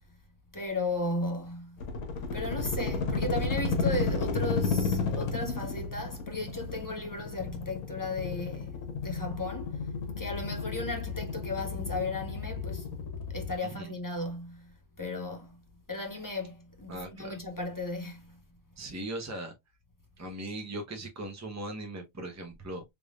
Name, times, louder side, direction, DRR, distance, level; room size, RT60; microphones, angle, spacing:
voice 1, 0.5-1.8 2.3-9.9 10.2-13.0 13.3-15.6 15.9-18.4, left 2 dB, 25° left, 0.5 m, -35 dB
sound 1, 1.8-13.5, left 4 dB, 80° left, 1.3 m, -32 dB
voice 2, 16.9-17.4 18.8-19.5 20.2-22.8, right 1 dB, 15° right, 0.7 m, -39 dB
3.5 x 3.4 x 2.4 m
omnidirectional pair, 1.5 m